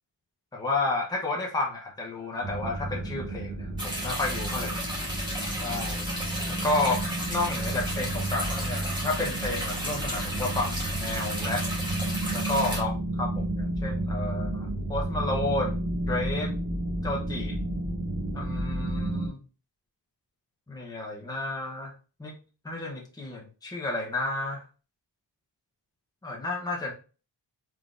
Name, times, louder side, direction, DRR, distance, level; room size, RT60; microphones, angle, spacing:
voice 1, 0.5-4.8 5.6-6.1 6.5-7.0 7.3-11.6 12.3-16.5 17.0-17.6 18.3-19.4 20.7-21.9 22.2-22.4 22.6-24.6 26.2-26.9, left 2 dB, 10° left, -2 dB, 0.8 m, -31 dB
sound 1, 2.4-19.3, right 1 dB, 35° right, 1.2 m, -32 dB
sound 2, 3.8-12.8, equal, 10° right, 1.2 m, -34 dB
3.6 x 3.6 x 2.5 m, 0.34 s
wide cardioid pair, 170°, 43 cm